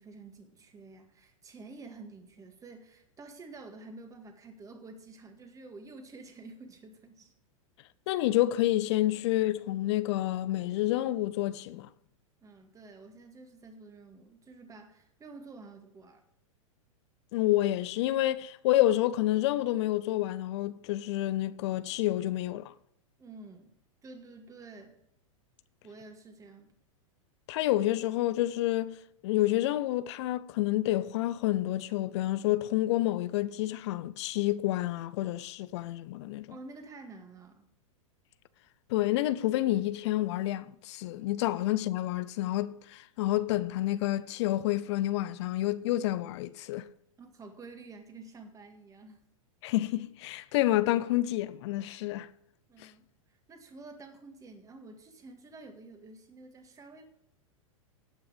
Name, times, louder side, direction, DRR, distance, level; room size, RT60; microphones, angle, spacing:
voice 1, 0.0-7.3 12.4-16.2 23.2-23.7 24.0-25.0 25.8-26.7 36.5-37.7 47.2-49.2 52.7-57.0, right 3 dB, 20° right, 1.9 m, -49 dB
voice 2, 8.1-11.9 17.3-22.7 27.5-29.0 29.2-36.6 38.9-46.9 49.6-52.3 52.8-52.9, left 15 dB, 55° left, 0.6 m, -29 dB
17.5 x 5.9 x 5.1 m
hypercardioid pair, 110°, 17 cm